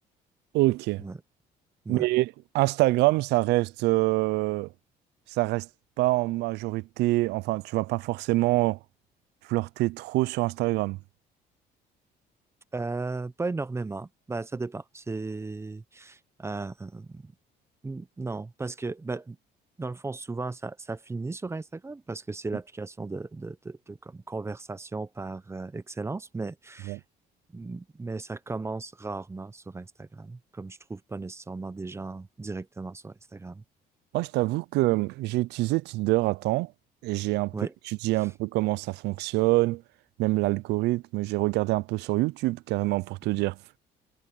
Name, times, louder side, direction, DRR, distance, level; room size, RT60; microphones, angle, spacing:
voice 1, 0.5-1.0 1.9-4.7 5.3-5.7 6.0-8.8 9.5-11.0 26.9-27.0 34.1-36.7 37.0-37.5 37.9-39.8 40.2-43.6, right 20 dB, 85° right, 0.5 m, -25 dB
voice 2, 12.7-17.3 17.8-19.4 19.8-27.0 27.5-33.6 37.5-37.7 38.2-38.3, right 3 dB, 15° right, 0.8 m, -36 dB
cardioid pair, 110°, 17 cm